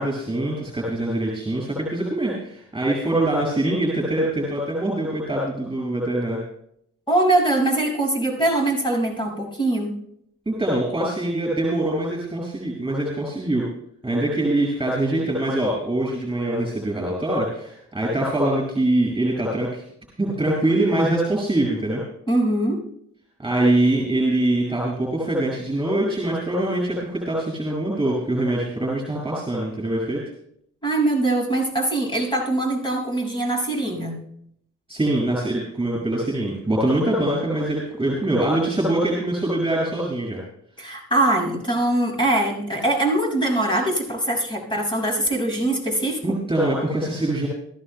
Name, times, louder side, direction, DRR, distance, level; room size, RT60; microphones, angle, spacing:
voice 1, 0.0-6.4 10.5-13.7 14.0-19.8 20.2-22.0 23.4-30.2 34.9-40.4 46.2-47.5, right 1 dB, 15° right, -3 dB, 6.2 m, -23 dB
voice 2, 7.1-9.9 22.3-22.8 30.8-34.2 40.8-46.4, right 2 dB, 15° left, 0 dB, 6.2 m, -22 dB
21.0 x 15.0 x 2.3 m, 0.71 s
cardioid pair, 90°, 30 cm